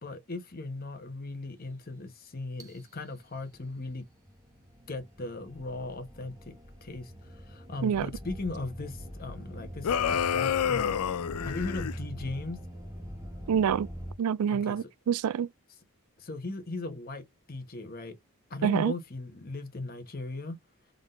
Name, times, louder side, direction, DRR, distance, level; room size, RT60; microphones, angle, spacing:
voice 1, 0.0-4.0 4.9-6.5 6.8-11.0 11.4-12.6 14.5-14.8 16.2-18.2 18.5-20.6, left 2 dB, 40° left, 1.1 m, -38 dB
sound 1, 2.6-14.1, equal, 15° right, 1.1 m, -43 dB
sound 2, 9.8-12.0, left 8 dB, 85° left, 0.4 m, -28 dB
voice 2, 13.5-13.9 14.2-15.5 18.6-18.9, right 7 dB, 85° right, 0.3 m, -27 dB
3.8 x 3.7 x 2.5 m
head